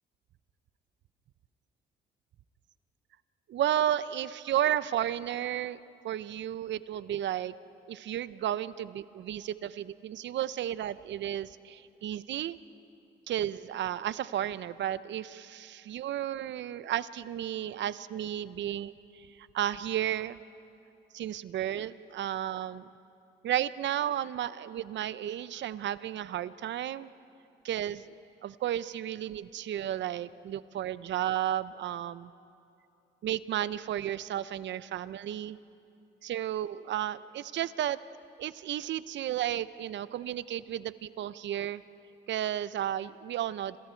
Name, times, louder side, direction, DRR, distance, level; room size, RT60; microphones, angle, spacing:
voice 1, 3.5-5.8 6.0-7.5 7.9-12.6 13.3-20.4 21.1-22.9 23.4-27.1 27.6-28.1 28.4-32.3 33.2-35.6 36.2-38.0 38.4-41.8 42.3-43.8, right 11 dB, 70° right, 16 dB, 0.7 m, -33 dB
27.5 x 27.0 x 4.5 m, 2.6 s
cardioid pair, 90°, 20 cm